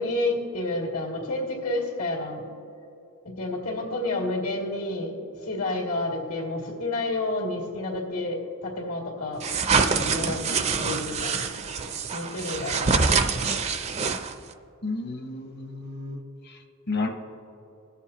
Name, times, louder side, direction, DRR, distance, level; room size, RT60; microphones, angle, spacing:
voice 1, 0.0-2.4 3.2-9.4 9.8-11.5 12.1-13.3, left 2 dB, 85° left, -2 dB, 2.3 m, -30 dB
sound 1, 9.4-14.5, right 5 dB, 30° right, 0.5 m, -25 dB
voice 2, 14.8-16.2 16.4-16.6 16.9-17.1, left 3 dB, 50° left, 5 dB, 1.0 m, -31 dB
20.5 x 7.2 x 2.9 m, 2.9 s
head